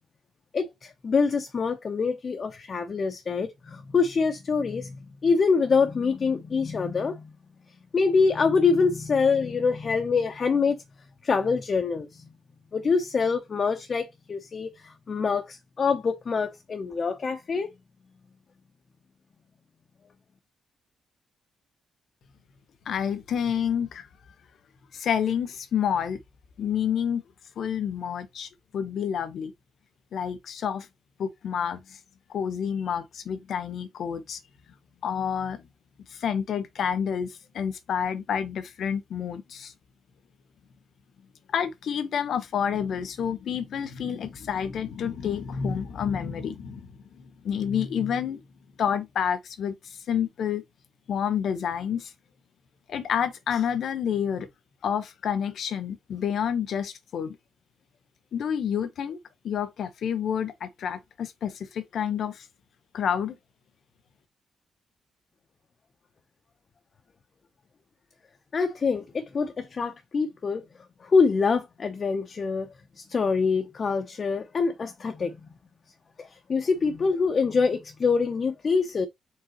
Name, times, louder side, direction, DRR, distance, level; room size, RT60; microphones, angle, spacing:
voice 1, 0.5-5.0 5.2-7.3 7.9-10.8 11.2-12.2 12.7-17.7 68.5-70.6 71.0-75.4 76.2-79.1, left 5 dB, 40° left, 0.7 m, -25 dB
voice 2, 22.9-24.1 24.9-26.2 26.6-27.2 27.6-29.5 30.1-30.9 31.2-32.0 32.3-34.4 35.0-35.6 36.1-39.7 41.5-48.4 48.8-50.6 51.1-52.1 52.9-54.5 54.8-57.4 58.3-59.2 59.4-62.4 62.9-63.4, left 8 dB, 65° left, 0.9 m, -29 dB
4.8 x 3.7 x 2.9 m
cardioid pair, 100°, 0 cm